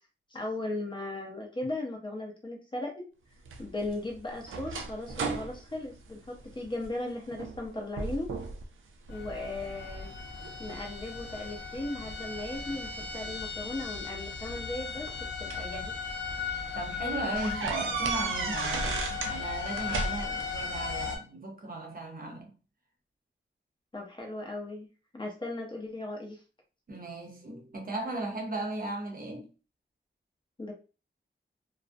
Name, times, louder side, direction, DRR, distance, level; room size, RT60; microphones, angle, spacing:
voice 1, 0.3-3.0 3.6-8.3 9.1-10.1 10.6-16.0 17.6-18.3 18.6-18.8 23.9-24.9 25.1-26.4 30.6-30.7, left 2 dB, 25° left, 0.6 m, -37 dB
sound 1, 3.5-6.9 7.3-7.7 8.0-8.6 9.1-9.8 10.4-11.8 13.0-13.1 14.3-15.7 16.3-16.4 16.7-16.8 17.4-19.4 19.7-20.5, right 4 dB, 85° right, 0.4 m, -35 dB
sound 2, 9.1-21.2, left 5 dB, 65° left, 0.6 m, -37 dB
voice 2, 16.7-22.5 26.9-29.5, right 2 dB, 45° right, 0.7 m, -36 dB
2.4 x 2.1 x 2.5 m
wide cardioid pair, 145°, 20 cm